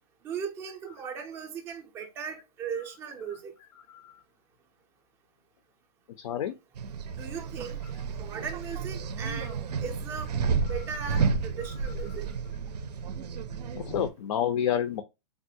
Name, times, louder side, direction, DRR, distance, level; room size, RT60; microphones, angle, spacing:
voice 1, 0.2-3.5 7.2-10.4 10.7-12.3, right 7 dB, 10° right, 0.4 m, -38 dB
voice 2, 6.2-6.6 13.8-15.0, left 9 dB, 55° left, 0.4 m, -29 dB
sound 1, 6.8-14.1, right 5 dB, 85° right, 0.5 m, -31 dB
3.5 x 2.3 x 2.6 m
hypercardioid pair, 165°, 20 cm